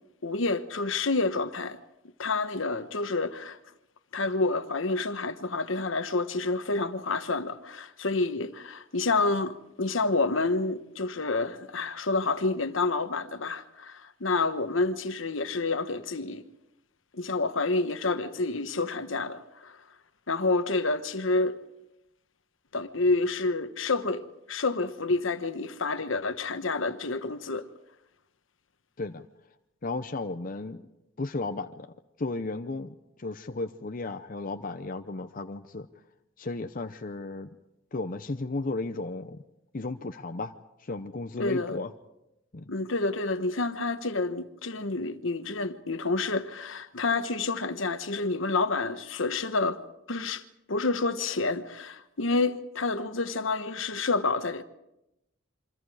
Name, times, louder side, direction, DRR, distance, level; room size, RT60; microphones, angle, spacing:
voice 1, 0.2-1.8 2.2-3.6 4.1-16.4 17.1-19.8 20.3-21.6 22.7-27.7 41.4-41.8 42.7-49.8 50.1-50.4 50.7-54.6, left 3 dB, 70° left, 1.2 m, -28 dB
voice 2, 29.8-30.8 31.2-31.9 32.2-35.9 36.4-37.5 37.9-39.4 39.7-40.5 40.8-41.9 42.5-42.6, left 3 dB, 40° left, 0.7 m, -34 dB
28.5 x 25.0 x 4.9 m
head